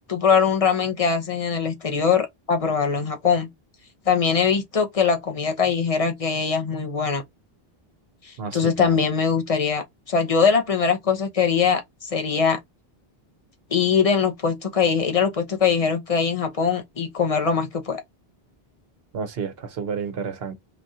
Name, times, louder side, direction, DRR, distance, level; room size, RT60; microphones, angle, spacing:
voice 1, 0.1-3.5 4.1-7.2 8.5-12.6 13.7-18.0, left 6 dB, 40° left, 0.8 m, -22 dB
voice 2, 8.4-9.0 19.1-20.5, right 6 dB, 80° right, 1.0 m, -31 dB
4.8 x 2.4 x 2.7 m
omnidirectional pair, 1.0 m